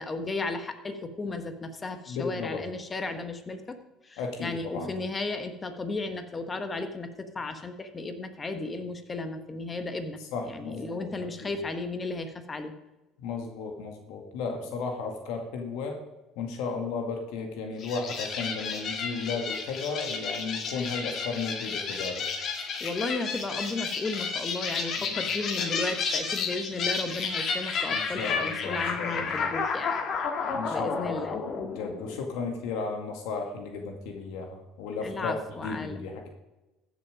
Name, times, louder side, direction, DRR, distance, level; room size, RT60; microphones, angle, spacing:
voice 1, 0.0-3.8 4.0-12.7 22.8-29.9 30.7-31.4 35.0-36.0, left 3 dB, 25° left, 8 dB, 1.4 m, -34 dB
voice 2, 2.1-2.6 4.2-4.9 10.3-11.1 11.4-11.5 13.2-16.0 16.4-22.2 25.0-25.1 27.9-29.5 30.5-35.3 35.6-36.3, left 4 dB, 80° left, 3 dB, 2.0 m, -34 dB
sound 1, 17.8-32.4, left 5 dB, 45° left, 2.0 m, -32 dB
14.5 x 7.3 x 5.1 m, 1.0 s
cardioid pair, 115°, 0 cm